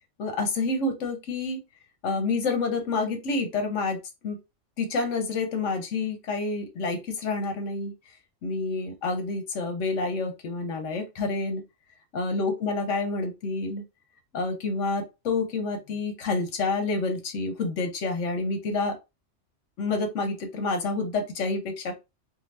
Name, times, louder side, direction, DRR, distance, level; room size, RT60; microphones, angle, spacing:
voice 1, 0.2-1.6 2.0-4.0 4.2-4.4 4.8-7.9 8.4-11.6 12.1-13.8 14.3-19.0 19.8-21.9, left 3 dB, 75° left, 5 dB, 1.1 m, -28 dB
2.7 x 2.2 x 3.2 m, 0.25 s
omnidirectional pair, 1.3 m